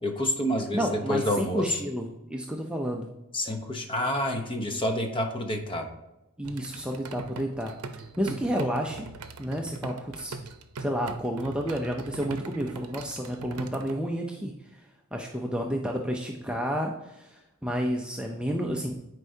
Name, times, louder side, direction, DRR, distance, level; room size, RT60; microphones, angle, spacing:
voice 1, 0.0-1.8 3.3-5.9, left 1 dB, 25° left, 4 dB, 0.8 m, -28 dB
voice 2, 0.7-3.1 6.4-7.7 8.2-9.1 9.4-10.3 10.8-14.5 15.1-18.9, equal, 5° right, 1 dB, 0.5 m, -30 dB
sound 1, 6.4-14.0, right 3 dB, 85° right, 0.6 m, -41 dB
9.7 x 4.6 x 2.7 m, 0.96 s
head